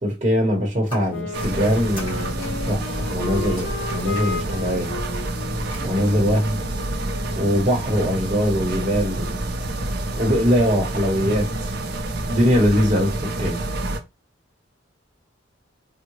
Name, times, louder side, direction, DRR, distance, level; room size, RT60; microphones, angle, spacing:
voice 1, 0.0-2.8 3.1-4.9 5.8-6.6 7.3-9.3 10.2-11.8 12.3-13.6, equal, 35° right, 0.9 m, -22 dB
sound 1, 0.8-5.8, left 1 dB, 25° left, 1.7 m, -42 dB
Wind instrument woodwind instrument, 1.1-7.7, left 3 dB, 65° left, 0.4 m, -34 dB
sound 2, 1.3-14.0, right 2 dB, 55° right, 0.5 m, -28 dB
3.6 x 2.0 x 3.0 m
head